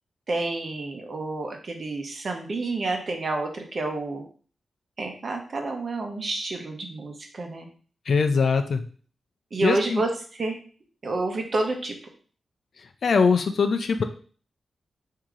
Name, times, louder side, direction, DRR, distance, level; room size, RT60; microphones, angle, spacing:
voice 1, 0.3-4.2 5.0-7.7 9.5-10.6 11.0-11.9, right 2 dB, 45° right, 3 dB, 0.9 m, -29 dB
voice 2, 8.1-8.8 9.6-10.0 13.0-14.0, left 5 dB, 60° left, 7 dB, 0.5 m, -22 dB
4.7 x 2.8 x 3.7 m, 0.42 s
wide cardioid pair, 120°, 0 cm